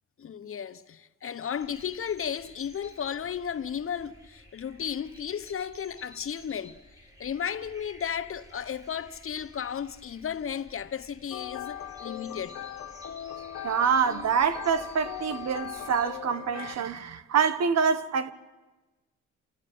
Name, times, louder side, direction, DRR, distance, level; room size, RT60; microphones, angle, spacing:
voice 1, 0.2-12.6, left 8 dB, 45° left, 1.1 m, -34 dB
sound 1, 1.6-16.2, equal, 10° right, 7.4 m, -53 dB
sound 2, 11.3-16.7, left 11 dB, 70° left, 1.8 m, -39 dB
voice 2, 13.6-18.3, right 6 dB, 60° right, 1.4 m, -26 dB
29.0 x 14.5 x 8.7 m
cardioid pair, 90°, 30 cm